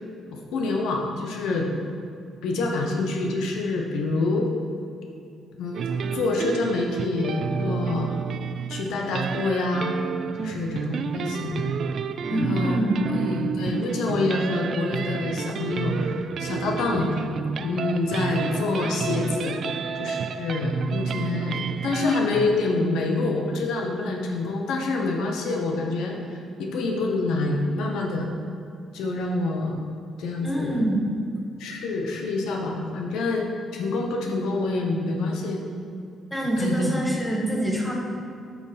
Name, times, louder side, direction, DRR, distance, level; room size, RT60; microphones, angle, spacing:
voice 1, 0.3-1.7 2.4-4.5 5.6-8.1 8.7-10.0 10.4-11.7 12.3-17.1 17.6-19.6 20.0-28.3 28.9-29.9 30.2-30.8 31.6-35.6 36.6-37.0, left 2 dB, 85° left, 1 dB, 1.0 m, -27 dB
sound 1, 5.7-22.5, right 6 dB, 60° right, 0.3 m, -30 dB
voice 2, 12.3-13.3 30.4-31.1 36.3-37.9, right 1 dB, ahead, -2 dB, 1.6 m, -25 dB
8.3 x 6.1 x 4.3 m, 2.5 s
cardioid pair, 90°, 0 cm